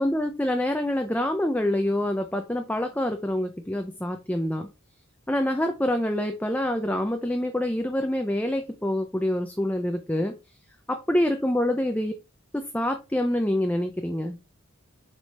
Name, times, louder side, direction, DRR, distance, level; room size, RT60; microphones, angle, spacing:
voice 1, 0.0-4.7 5.3-10.4 10.9-12.1 12.5-14.4, left 1 dB, 5° left, 0.5 m, -26 dB
6.5 x 5.0 x 4.1 m
head